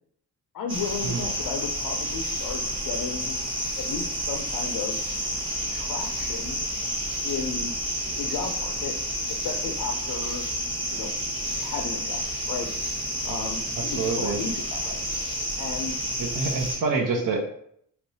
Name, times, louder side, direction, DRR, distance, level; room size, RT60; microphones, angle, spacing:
voice 1, 0.5-3.4 3.8-5.0 5.7-6.6 7.2-7.7 8.2-8.9 9.3-10.4 10.9-11.1 11.6-12.7 13.2-15.0 15.6-16.0 16.8-16.9, left 5 dB, 70° left, 3 dB, 0.5 m, -34 dB
sound 1, 0.7-16.8, equal, 15° right, 0.9 m, -30 dB
voice 2, 13.8-14.4 16.2-17.4, right 4 dB, 70° right, 2 dB, 0.7 m, -27 dB
3.2 x 2.9 x 2.7 m, 0.68 s
cardioid pair, 105°, 35 cm